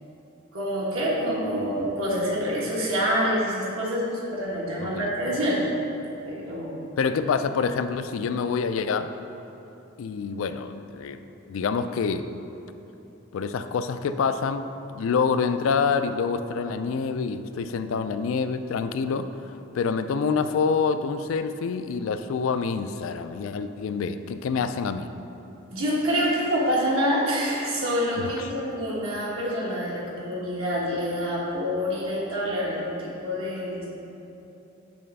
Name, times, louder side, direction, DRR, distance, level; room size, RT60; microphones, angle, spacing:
voice 1, 0.5-4.1 4.3-5.7 6.3-6.8 25.7-33.9, equal, 90° right, -6 dB, 1.4 m, -26 dB
voice 2, 4.8-5.1 7.0-9.1 10.0-11.2 11.5-12.3 13.3-14.7 14.9-25.1 28.2-28.5, left 5 dB, 75° left, 10 dB, 0.3 m, -27 dB
8.7 x 3.3 x 5.4 m, 2.9 s
head